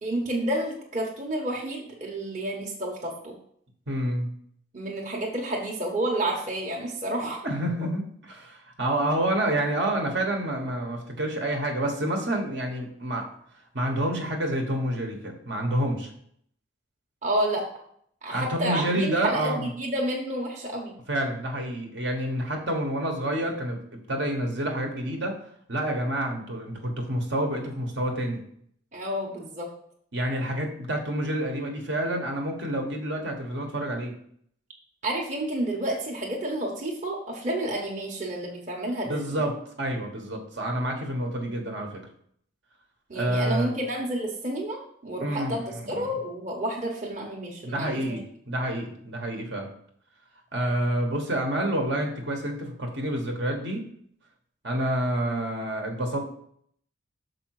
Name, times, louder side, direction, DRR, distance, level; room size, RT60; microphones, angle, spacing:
voice 1, 0.0-3.3 4.7-7.4 17.2-17.6 18.2-20.9 28.9-29.7 35.0-39.4 43.1-45.6 45.9-48.2, right 1 dB, 40° right, -2 dB, 1.1 m, -30 dB
voice 2, 3.9-4.3 7.4-13.3 13.7-16.1 18.3-19.7 21.1-25.4 25.7-28.4 30.1-34.1 39.1-42.0 43.1-43.7 45.2-46.1 47.6-49.7 50.5-53.9 54.6-56.2, right 1 dB, 65° right, 2 dB, 1.3 m, -28 dB
6.6 x 4.9 x 4.7 m, 0.65 s
head